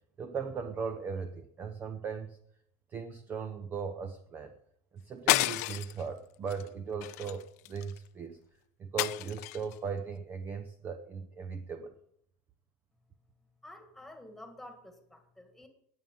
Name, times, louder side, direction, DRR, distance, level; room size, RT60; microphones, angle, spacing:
voice 1, 0.2-2.4 2.9-4.5 4.9-8.4 8.8-11.9, right 5 dB, 20° right, 9 dB, 0.6 m, -38 dB
sound 1, 5.3-6.0 6.5-6.7 7.0-8.0 9.0-9.7, left 20 dB, 75° left, 0.5 m, -30 dB
voice 2, 13.6-15.7, left 1 dB, ahead, 5 dB, 1.8 m, -50 dB
19.0 x 7.3 x 5.4 m, 0.72 s
cardioid pair, 170°, 9 cm